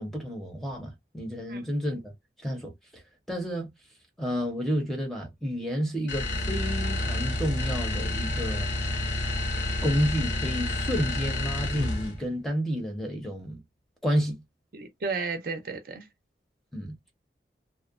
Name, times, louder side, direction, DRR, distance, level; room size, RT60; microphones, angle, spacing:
voice 1, 0.0-2.1 2.4-3.0 3.3-3.7 4.2-8.7 9.8-13.6 14.0-14.4 16.7-16.9, equal, ahead, 0.7 m, -30 dB
sound 1, 6.1-12.2, left 1 dB, 80° left, 0.8 m, -29 dB
voice 2, 14.7-16.1, right 4 dB, 55° right, 0.5 m, -33 dB
2.7 x 2.1 x 2.4 m
head